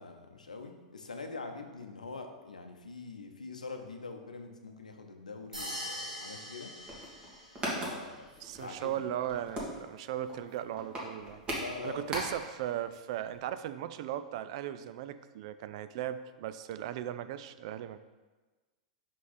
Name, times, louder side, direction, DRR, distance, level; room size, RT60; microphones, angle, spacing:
voice 1, 0.0-6.7 7.7-9.0 11.5-12.2, left 3 dB, 85° left, 5 dB, 0.7 m, -44 dB
sound 1, 5.5-7.8, equal, 90° right, 2.1 m, -42 dB
sound 2, 6.8-12.6 12.9-13.0 13.2-13.4, right 1 dB, 25° right, 1.9 m, -39 dB
voice 2, 8.4-11.4 11.8-18.0, right 11 dB, 55° right, 12 dB, 0.4 m, -37 dB
5.8 x 4.9 x 4.1 m, 1.2 s
figure-of-eight pair, 95°, 4 cm